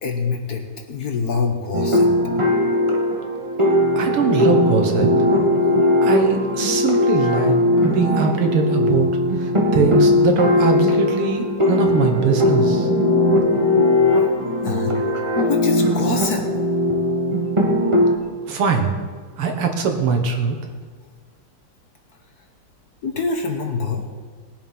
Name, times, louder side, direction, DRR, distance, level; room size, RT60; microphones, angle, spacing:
voice 1, 0.0-2.1 14.6-16.4 23.0-24.1, left 4 dB, 50° left, 4 dB, 1.5 m, -25 dB
sound 1, 1.7-18.1, left 1 dB, 15° right, 1.4 m, -19 dB
voice 2, 4.0-5.1 6.0-7.5 7.8-9.1 9.3-12.9 18.5-18.9 19.4-20.6, right 5 dB, 80° right, 3 dB, 2.3 m, -21 dB
19.5 x 7.3 x 5.4 m, 1.5 s
omnidirectional pair, 2.4 m